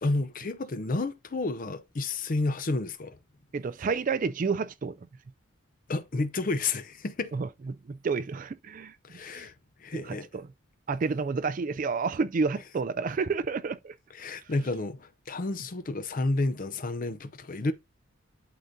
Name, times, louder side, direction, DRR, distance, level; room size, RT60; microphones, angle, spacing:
voice 1, 0.0-3.2 5.9-7.4 9.0-9.5 9.8-10.3 14.1-17.7, left 2 dB, 40° left, 0.5 m, -30 dB
voice 2, 3.5-4.9 7.3-8.9 9.4-9.5 9.9-10.5 10.9-13.9, right 4 dB, 40° right, 0.3 m, -30 dB
11.5 x 3.9 x 2.7 m
head